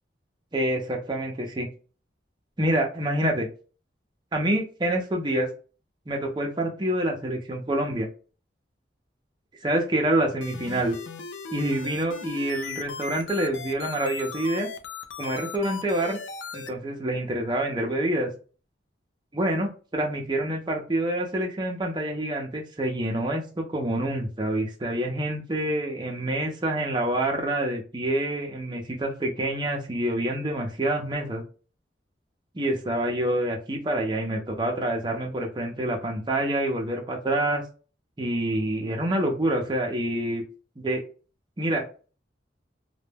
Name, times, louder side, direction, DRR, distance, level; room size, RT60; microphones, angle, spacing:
voice 1, 0.5-1.7 2.6-3.5 4.3-5.5 6.1-8.1 9.6-11.0 11.5-14.7 15.2-16.2 16.5-18.3 19.3-31.4 32.5-37.6 38.2-40.4 40.8-41.0 41.6-41.8, right 1 dB, 25° right, 0 dB, 0.5 m, -27 dB
sound 1, 10.4-16.7, left 5 dB, 85° left, 0.4 m, -37 dB
2.1 x 2.1 x 3.2 m, 0.36 s
head